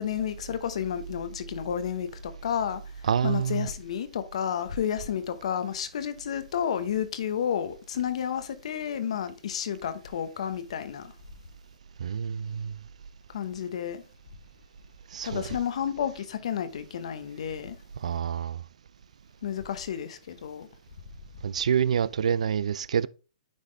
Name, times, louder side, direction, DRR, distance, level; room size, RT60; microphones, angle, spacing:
voice 1, 0.0-11.1 13.3-14.0 15.2-17.8 19.4-20.7, left 8 dB, 65° left, 1.0 m, -31 dB
voice 2, 3.0-3.7 12.0-12.8 15.1-15.5 18.0-18.6 21.4-23.1, right 8 dB, 75° right, 0.3 m, -27 dB
9.6 x 3.5 x 3.3 m
hypercardioid pair, 135°, 4 cm